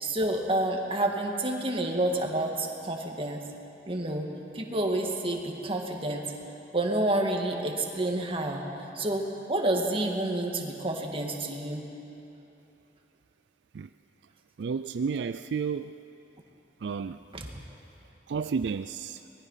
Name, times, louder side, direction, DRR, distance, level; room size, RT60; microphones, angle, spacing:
voice 1, 0.0-3.4 3.9-4.3 4.5-6.2 6.7-8.6 9.0-9.2 9.5-11.8 17.3-17.5, right 1 dB, 30° right, 1 dB, 2.1 m, -29 dB
voice 2, 14.6-15.9 16.8-17.2 18.3-19.2, right 5 dB, 75° right, 11 dB, 0.4 m, -31 dB
24.0 x 20.0 x 5.7 m, 3.0 s
head